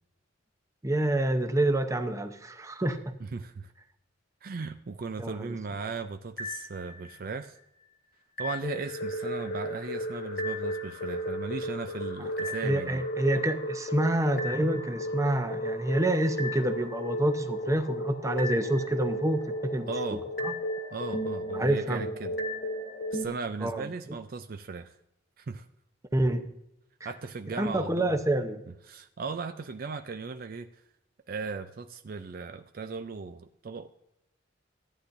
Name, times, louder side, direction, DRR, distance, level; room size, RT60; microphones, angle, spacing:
voice 1, 0.8-3.0 5.2-5.5 12.6-19.9 20.4-20.5 21.5-22.1 23.6-23.9 26.1-26.4 27.6-28.6, right 1 dB, 15° right, 7 dB, 0.7 m, -27 dB
voice 2, 3.2-3.7 4.4-7.6 8.4-13.0 19.9-20.2 20.9-22.3 23.1-25.0 25.4-25.7 27.0-28.1 28.9-30.8 31.3-33.9, right 4 dB, 50° right, 9 dB, 0.4 m, -37 dB
sound 1, 6.4-7.3 8.4-23.2, equal, 50° left, 1.4 m, -34 dB
14.5 x 9.9 x 2.6 m, 0.85 s
head